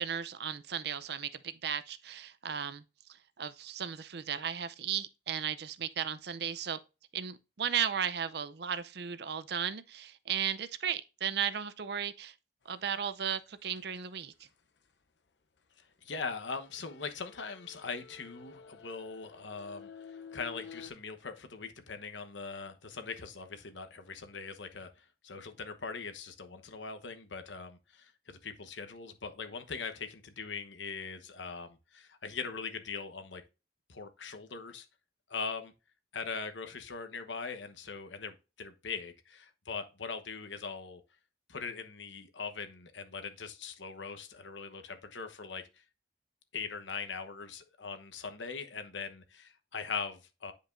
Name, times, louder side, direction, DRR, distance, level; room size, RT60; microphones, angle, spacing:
voice 1, 0.0-2.8 3.4-6.8 7.1-12.3 12.7-14.3, right 8 dB, 60° right, 0.6 m, -35 dB
sound 1, 13.7-14.5 16.5-20.9, left 6 dB, 70° left, 0.7 m, -51 dB
voice 2, 16.0-33.4 33.9-34.9 35.3-35.7 36.1-41.0 41.5-45.8 46.5-50.5, left 5 dB, 90° left, 1.1 m, -41 dB
9.4 x 5.2 x 2.6 m
head